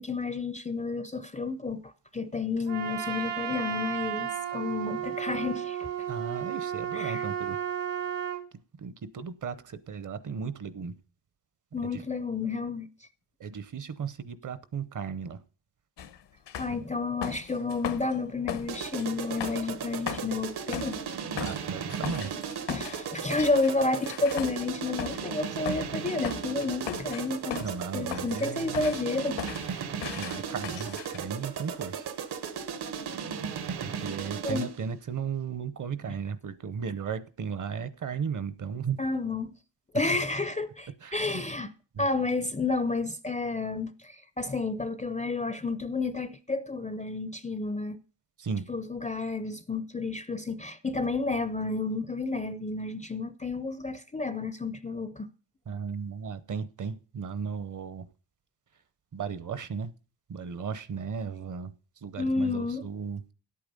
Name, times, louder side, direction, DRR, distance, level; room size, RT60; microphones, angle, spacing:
voice 1, 0.0-5.9 6.9-7.3 11.7-12.9 16.6-21.0 22.7-27.7 27.9-29.4 34.4-34.7 39.0-39.5 39.9-41.7 42.0-48.0 48.7-55.3 62.2-62.8, left 3 dB, 20° left, 0.4 m, -31 dB
Trumpet, 2.7-8.4, right 9 dB, 85° right, 1.8 m, -33 dB
voice 2, 6.1-7.6 8.8-10.9 11.8-12.0 13.4-15.4 16.7-16.8 21.3-22.4 27.6-28.9 30.2-32.1 33.8-39.0 41.0-41.4 41.9-42.1 48.4-48.7 55.7-58.1 59.1-59.9 60.3-61.7 62.0-63.2, right 6 dB, 45° right, 0.8 m, -35 dB
sound 1, 16.0-16.2 16.5-18.2 18.5-25.3 25.6-25.9 26.2-27.8 28.1-28.5 28.7-31.2, left 8 dB, 85° left, 1.0 m, -38 dB
sound 2, 18.7-34.9, right 7 dB, 65° right, 1.1 m, -36 dB
10.5 x 8.7 x 5.3 m
wide cardioid pair, 175°, 42 cm